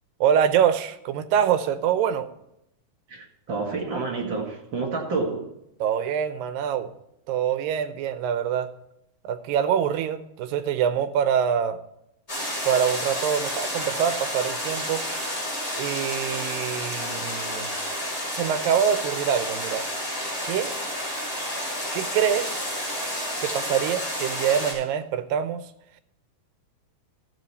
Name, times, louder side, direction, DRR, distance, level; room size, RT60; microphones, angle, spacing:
voice 1, 0.2-2.3 5.8-6.9 7.3-8.7 9.2-11.8 12.7-15.0 15.8-17.8 18.3-19.9 20.4-20.7 21.9-22.6 23.4-25.6, right 8 dB, 90° right, 2.5 m, -25 dB
voice 2, 3.1-5.5, right 3 dB, 45° right, 1.8 m, -29 dB
sound 1, 12.3-24.7, left 1 dB, 15° left, 5.2 m, -30 dB
14.0 x 7.6 x 4.1 m
omnidirectional pair, 3.9 m